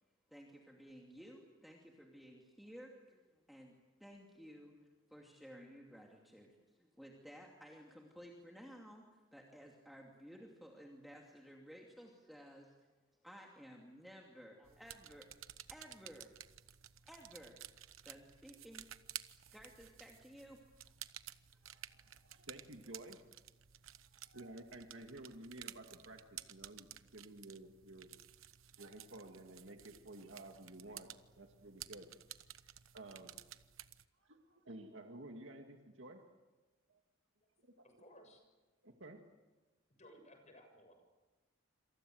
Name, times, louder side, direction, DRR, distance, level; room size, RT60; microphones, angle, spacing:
voice 1, 0.3-4.7 5.1-12.7 13.2-15.3 15.7-16.3 17.1-17.6 18.0-18.9 19.5-20.6 21.6-21.8 22.5-22.6, equal, ahead, -1 dB, 2.6 m, -55 dB
sound 1, 14.6-34.0, right 12 dB, 85° right, 1.0 m, -54 dB
voice 2, 21.6-23.2 24.2-26.9 27.1-28.1 28.8-31.1 31.4-32.1 32.6-33.3 34.2-36.2 36.9-37.0 37.6-37.7 38.8-39.2, right 1 dB, 65° right, 3 dB, 2.1 m, -53 dB
voice 3, 37.7-38.4 40.0-41.0, equal, 35° left, 5 dB, 6.9 m, -60 dB
27.5 x 27.0 x 7.8 m, 1.2 s
head